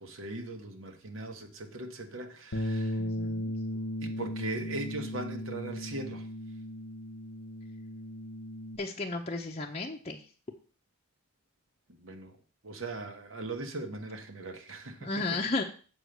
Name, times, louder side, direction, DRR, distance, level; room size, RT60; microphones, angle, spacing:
voice 1, 0.0-3.0 4.0-6.3 11.9-12.4 12.6-15.4, right 2 dB, 65° right, 1.3 m, -39 dB
Bass guitar, 2.5-8.8, left 1 dB, 80° left, 0.9 m, -36 dB
voice 2, 3.0-3.5 8.8-10.2 15.0-15.6, left 3 dB, 30° left, 0.7 m, -33 dB
7.4 x 4.8 x 6.6 m
head